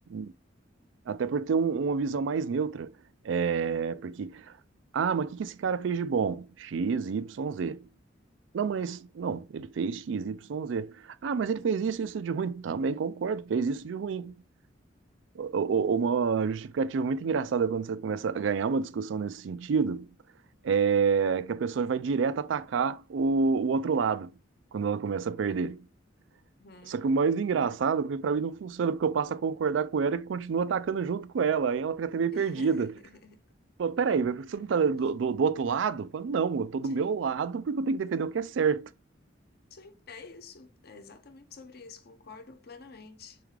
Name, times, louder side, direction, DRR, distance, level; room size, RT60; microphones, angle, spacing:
voice 1, 1.1-2.9 3.2-4.5 4.9-7.9 8.5-11.0 11.2-14.3 15.4-20.1 20.6-24.3 24.7-25.9 26.9-32.9 33.8-38.9, right 5 dB, 75° right, 0.4 m, -28 dB
voice 2, 26.6-27.0 32.3-33.4 36.8-37.2 39.7-43.4, left 4 dB, 55° left, 0.7 m, -49 dB
6.8 x 2.4 x 3.2 m
head